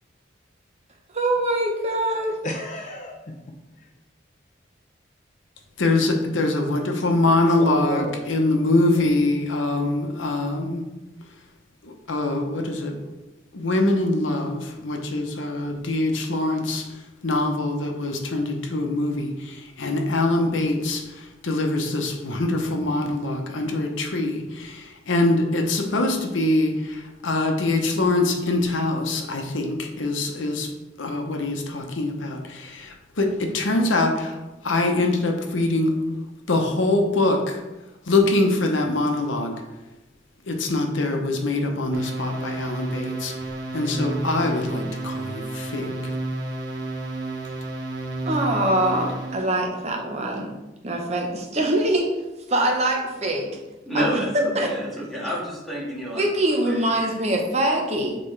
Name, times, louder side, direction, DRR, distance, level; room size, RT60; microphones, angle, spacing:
voice 1, 1.1-2.3 48.3-50.5 50.8-52.1 52.5-53.5 53.9-54.2 54.5-54.7 56.2-58.2, right 1 dB, 35° right, 1 dB, 0.8 m, -23 dB
voice 2, 2.4-3.9 7.0-7.1 7.6-8.3 8.9-9.0 12.4-12.6 14.4-14.5, right 1 dB, 40° left, 1 dB, 0.6 m, -33 dB
voice 3, 5.8-10.8 11.8-13.0 13.5-16.8 17.2-21.0 21.4-30.7 31.0-34.4 34.6-35.9 36.5-37.6 38.1-39.5 40.5-43.3 43.7-46.0, left 2 dB, 80° left, 3 dB, 0.9 m, -23 dB
sound 1, 41.9-49.5, right 2 dB, 60° right, 1.0 m, -31 dB
voice 4, 53.8-56.2 56.6-56.9, equal, ahead, -7 dB, 1.8 m, -29 dB
7.6 x 4.2 x 3.3 m, 1.0 s
head